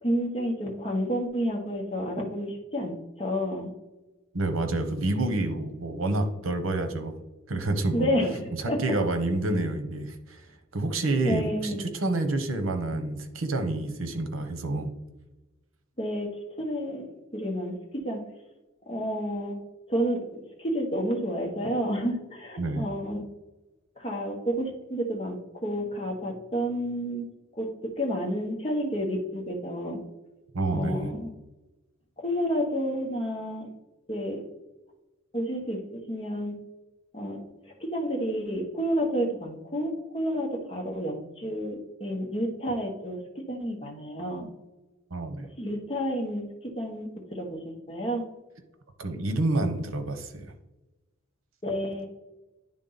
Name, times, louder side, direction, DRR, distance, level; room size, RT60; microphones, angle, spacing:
voice 1, 0.0-3.7 7.9-9.0 11.2-11.8 16.0-17.1 17.3-18.2 18.9-19.6 19.9-20.3 20.6-23.2 24.0-27.3 27.5-30.0 30.7-31.3 32.2-33.7 34.1-34.4 35.3-35.8 36.1-36.6 37.1-37.4 37.8-44.5 45.6-46.4 46.8-48.3 51.6-52.1, equal, 30° left, 1 dB, 1.3 m, -30 dB
voice 2, 4.3-7.1 7.5-8.1 8.5-10.4 10.7-14.9 22.6-22.9 30.5-31.1 45.1-45.5 49.0-50.5, right 2 dB, 80° right, 7 dB, 0.9 m, -28 dB
10.5 x 3.6 x 4.0 m, 1.1 s
head